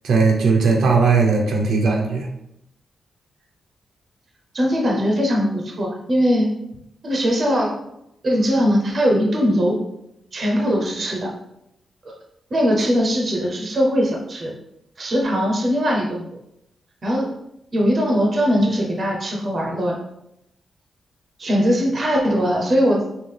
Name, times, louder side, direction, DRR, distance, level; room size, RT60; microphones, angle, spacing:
voice 1, 0.0-2.3, right 4 dB, 75° right, 1 dB, 0.7 m, -18 dB
voice 2, 4.5-6.5 7.0-7.7 8.2-9.8 10.3-11.3 12.5-14.5 15.0-16.2 17.0-17.3 17.7-19.9 21.4-23.0, equal, 35° right, 0 dB, 0.8 m, -20 dB
5.5 x 2.5 x 3.3 m, 0.82 s
wide cardioid pair, 170°, 0 cm